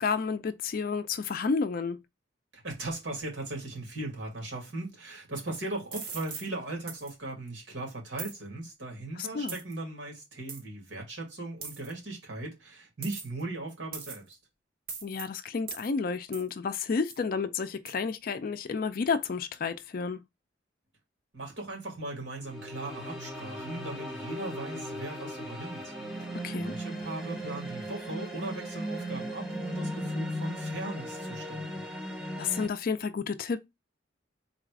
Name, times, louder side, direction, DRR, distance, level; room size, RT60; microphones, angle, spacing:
voice 1, 0.0-2.0 9.2-9.6 15.0-20.2 26.4-26.7 32.4-33.6, left 5 dB, 50° left, 0.4 m, -31 dB
voice 2, 2.5-14.4 21.3-25.9 26.6-31.9, right 2 dB, 70° right, 2.0 m, -38 dB
sound 1, 5.9-6.5 6.9-7.1 8.2-8.4 9.5-9.7 10.5-10.6 11.6-11.9 13.0-13.4 13.9-14.3 14.9-15.2 15.7-15.9 16.3-16.5 17.1-17.2 17.9-18.0, right 5 dB, 50° right, 0.9 m, -40 dB
sound 2, 22.4-32.7, equal, 5° right, 0.7 m, -37 dB
3.9 x 2.4 x 4.6 m
head